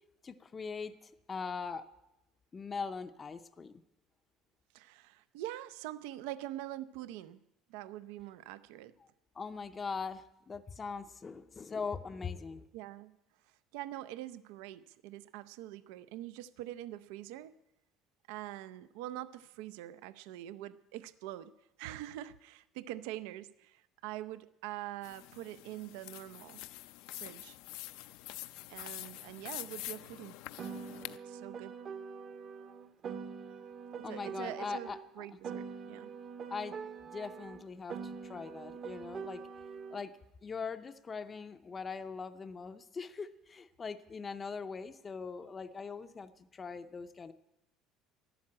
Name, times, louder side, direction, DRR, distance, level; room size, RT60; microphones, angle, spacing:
voice 1, 0.2-1.8 2.5-3.7 9.4-12.7 34.0-35.4 36.5-36.8 37.0-39.4 39.9-40.1 40.4-47.3, left 5 dB, 20° left, 9 dB, 0.5 m, -41 dB
voice 2, 4.7-7.4 7.7-8.9 12.7-13.2 13.4-17.5 18.3-26.6 27.1-27.6 28.7-30.4 31.2-31.8 34.1-36.1, right 14 dB, 90° right, 16 dB, 0.5 m, -44 dB
sound 1, 25.0-31.2, left 17 dB, 75° left, 0.5 m, -46 dB
Piano, 30.6-35.0 35.4-40.0, right 6 dB, 35° right, 0.7 m, -44 dB
12.0 x 11.0 x 8.6 m, 0.92 s
cardioid pair, 150°, 0 cm